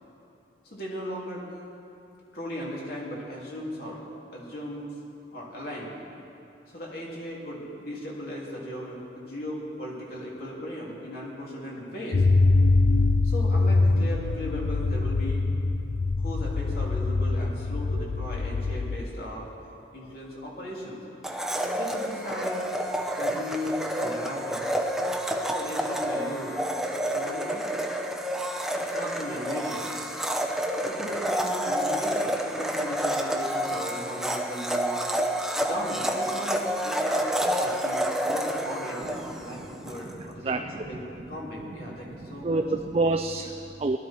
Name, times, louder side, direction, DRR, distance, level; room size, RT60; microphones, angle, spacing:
voice 1, 0.6-1.4 2.3-4.0 4.3-4.9 5.3-6.0 6.7-12.2 13.2-15.4 16.2-19.5 19.9-21.0 21.7-22.7 23.2-24.7 25.5-26.5 27.0-27.7 28.9-29.9 30.8-35.0 35.6-41.0 41.3-42.6, equal, 55° left, -4 dB, 3.3 m, -37 dB
sound 1, 12.1-19.0, left 3 dB, 75° left, 0.6 m, -23 dB
Domestic sounds home sounds, 21.2-40.0, equal, 5° right, 0.7 m, -29 dB
voice 2, 40.2-40.8 42.1-44.0, right 3 dB, 35° right, 5 dB, 0.4 m, -28 dB
20.0 x 13.0 x 4.5 m, 2.8 s
head